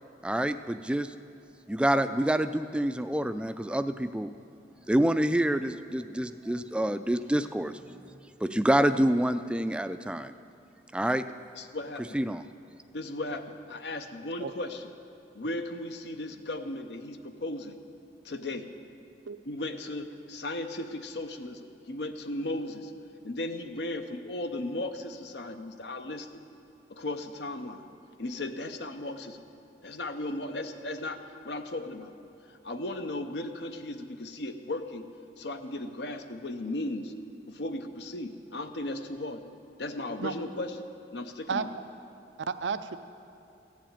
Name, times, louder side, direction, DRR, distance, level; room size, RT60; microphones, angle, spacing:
voice 1, 0.2-1.1 1.7-4.3 4.9-7.8 8.4-10.3 10.9-11.3 12.1-12.4, right 1 dB, 5° right, 10 dB, 0.3 m, -27 dB
voice 2, 11.6-12.1 12.9-14.9 15.3-17.8 18.2-18.7 19.5-22.9 23.2-26.3 26.9-27.9 28.2-29.4 29.8-32.1 32.5-35.1 35.4-37.1 37.5-39.4 39.8-40.8 41.1-41.7, left 2 dB, 75° left, 8 dB, 0.7 m, -36 dB
voice 3, 42.5-43.0, right 5 dB, 90° right, 11 dB, 0.5 m, -31 dB
15.0 x 7.5 x 8.9 m, 2.7 s
head